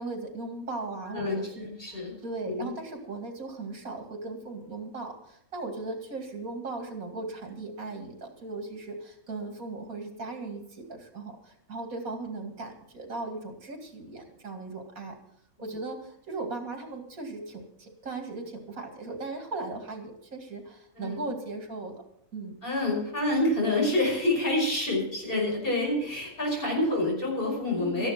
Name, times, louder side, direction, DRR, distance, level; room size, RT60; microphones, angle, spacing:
voice 1, 0.0-15.1 15.6-22.0 22.3-22.6 27.8-28.1, right 3 dB, 80° right, 4 dB, 2.8 m, -38 dB
voice 2, 1.1-2.1 2.4-2.7 15.6-15.7 21.0-21.3 22.6-28.1, left 2 dB, 40° left, -2 dB, 5.7 m, -28 dB
13.5 x 11.0 x 5.9 m, 0.73 s
omnidirectional pair, 1.4 m